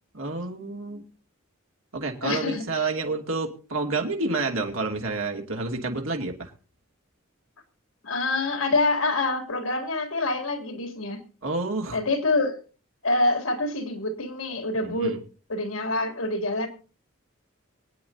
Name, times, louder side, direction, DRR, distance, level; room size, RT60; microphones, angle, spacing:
voice 1, 0.1-1.0 1.9-6.5 11.4-12.0 14.8-15.2, right 3 dB, 80° right, 2 dB, 2.6 m, -29 dB
voice 2, 2.2-2.6 8.0-11.2 11.9-12.6 13.0-15.2 15.5-16.7, left 2 dB, 80° left, 5 dB, 3.2 m, -26 dB
24.5 x 9.5 x 2.8 m, 0.36 s
head